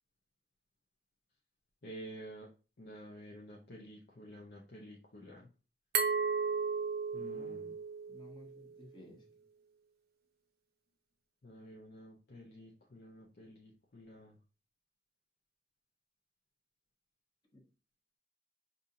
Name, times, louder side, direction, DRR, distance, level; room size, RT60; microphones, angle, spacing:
voice 1, 1.8-2.5 2.8-5.5 7.1-7.8 11.4-14.4, equal, 60° left, -2 dB, 0.7 m, -50 dB
Glass, 5.9-8.7, right 5 dB, 60° right, 0.6 m, -34 dB
voice 2, 7.1-7.7 8.1-9.2 17.5-17.6, left 1 dB, 25° left, -1 dB, 1.1 m, -55 dB
5.4 x 2.6 x 2.7 m, 0.35 s
head